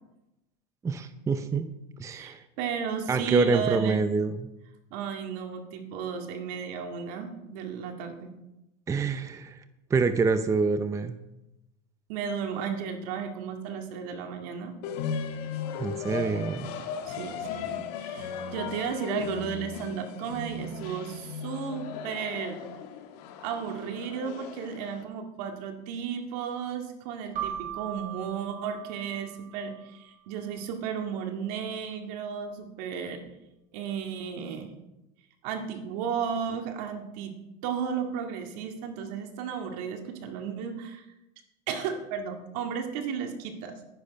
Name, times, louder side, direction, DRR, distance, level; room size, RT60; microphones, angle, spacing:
voice 1, 0.8-1.7 2.0-2.4 3.1-4.5 8.9-9.6 9.9-11.2 15.8-16.7, right 4 dB, 15° right, 10 dB, 0.6 m, -26 dB
voice 2, 2.1-4.0 4.9-8.3 12.1-14.7 17.0-22.7 23.4-33.2 33.7-34.7 35.4-37.3 37.6-41.1 41.7-43.8, right 7 dB, 70° right, 5 dB, 2.0 m, -34 dB
sound 1, 14.8-25.0, left 6 dB, 70° left, 1.5 m, -36 dB
Keyboard (musical), 27.4-29.9, right 10 dB, 40° right, 3.2 m, -38 dB
10.5 x 10.5 x 5.3 m, 0.94 s
supercardioid pair, 140°, 21 cm